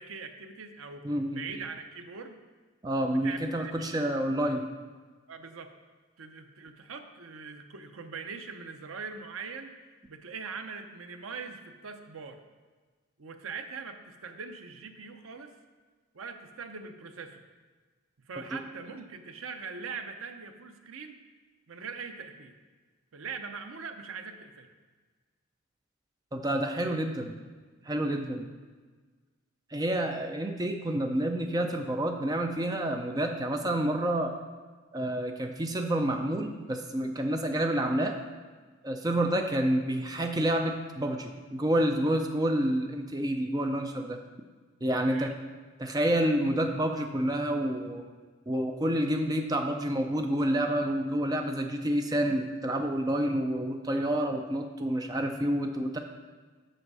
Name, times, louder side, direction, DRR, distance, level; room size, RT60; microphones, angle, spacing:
voice 1, 0.0-2.4 3.2-3.9 5.3-5.7 6.2-9.7 10.1-12.4 13.2-15.5 16.1-17.4 18.2-21.2 21.7-22.6 23.1-24.7 45.0-45.3, right 5 dB, 75° right, 7 dB, 0.7 m, -42 dB
voice 2, 1.0-1.4 2.8-4.7 18.5-18.6 26.3-27.4 27.8-28.5 29.7-34.3 34.9-38.1 38.8-44.2 44.8-45.3 45.8-48.0 48.5-56.0, right 1 dB, 20° right, 4 dB, 0.5 m, -28 dB
7.7 x 6.4 x 4.8 m, 1.4 s
head